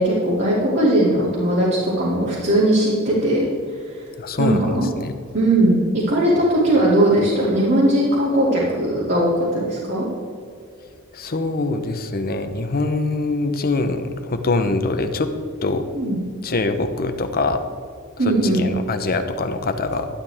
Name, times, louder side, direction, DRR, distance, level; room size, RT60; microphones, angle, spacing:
voice 1, 0.0-3.5 3.9-4.0 4.4-4.8 5.3-10.1 15.9-16.2 18.2-18.6, right 1 dB, 55° right, -8 dB, 2.8 m, -19 dB
voice 2, 4.2-5.2 11.1-15.3 15.6-15.9 16.4-17.6 18.3-20.1, left 3 dB, 45° left, 8 dB, 0.9 m, -23 dB
11.5 x 11.5 x 3.6 m, 2.3 s
head